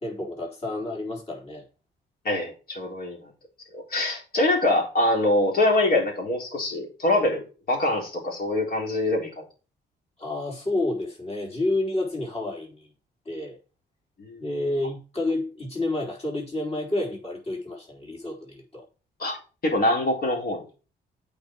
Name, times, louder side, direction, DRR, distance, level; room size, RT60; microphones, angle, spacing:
voice 1, 0.0-1.6 10.2-12.9 13.3-13.6 14.4-18.8, left 2 dB, 30° left, 4.1 m, -29 dB
voice 2, 2.2-3.2 3.7-7.4 7.7-9.4 14.2-14.4 19.2-19.4 19.6-20.6, left 2 dB, 50° left, 4.0 m, -24 dB
8.6 x 5.6 x 4.6 m
cardioid pair, 95°, 19 cm